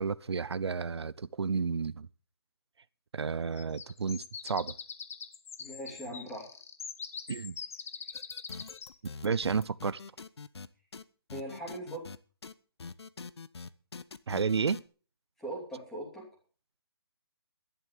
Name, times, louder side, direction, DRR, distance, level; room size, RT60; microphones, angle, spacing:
voice 1, 0.0-2.1 3.1-4.7 7.3-7.6 9.2-10.0 14.3-14.8, right 5 dB, 85° right, 0.7 m, -31 dB
sound 1, 3.6-8.9, left 6 dB, 35° left, 0.9 m, -43 dB
voice 2, 5.6-6.5 11.3-12.1 15.4-16.3, right 1 dB, ahead, 2.9 m, -40 dB
sound 2, 8.1-10.7 10.9-11.0 11.3-12.2 12.4-12.5 12.8-14.8, left 4 dB, 80° left, 1.0 m, -44 dB
11.0 x 11.0 x 6.8 m
hypercardioid pair, 175°, 13 cm